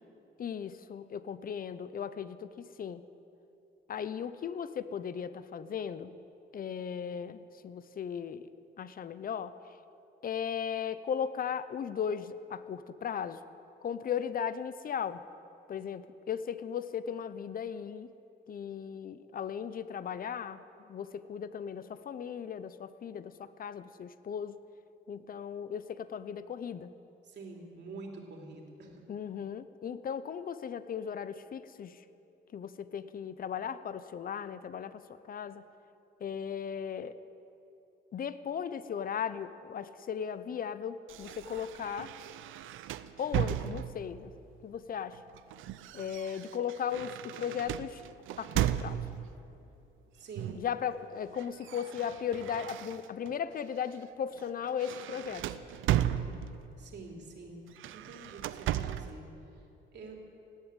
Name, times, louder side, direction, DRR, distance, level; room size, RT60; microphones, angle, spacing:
voice 1, 0.4-3.0 3.9-6.2 6.5-8.5 8.8-9.6 10.2-13.4 13.8-15.2 15.7-18.1 18.5-24.6 25.1-26.9 29.1-32.0 32.5-35.6 36.2-37.2 38.1-42.1 43.2-44.3 44.6-45.2 45.9-48.0 48.4-49.0 50.5-55.6, left 8 dB, 45° left, 14 dB, 0.7 m, -37 dB
voice 2, 27.3-29.0 50.1-50.6 56.8-57.6 57.9-59.3 59.9-60.2, right 3 dB, 60° right, 1 dB, 3.0 m, -46 dB
sound 1, 41.1-44.2 45.1-49.3 50.4-50.7 51.0-53.3 53.8-54.0 54.4-56.8 57.7-59.2, right 12 dB, 80° right, 0.6 m, -35 dB
18.5 x 8.3 x 8.9 m, 2.8 s
cardioid pair, 90°, 20 cm